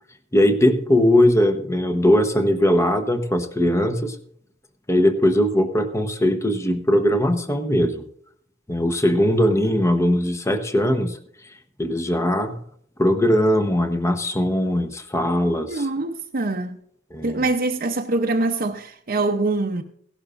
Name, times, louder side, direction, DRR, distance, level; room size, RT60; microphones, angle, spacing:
voice 1, 0.3-4.2 4.9-8.0 8.7-11.2 11.8-12.6 13.0-15.9 17.1-17.4, left 1 dB, 15° left, 1.0 m, -20 dB
voice 2, 15.7-16.8 17.2-19.8, right 2 dB, 45° right, 0.8 m, -24 dB
17.0 x 11.5 x 2.5 m
head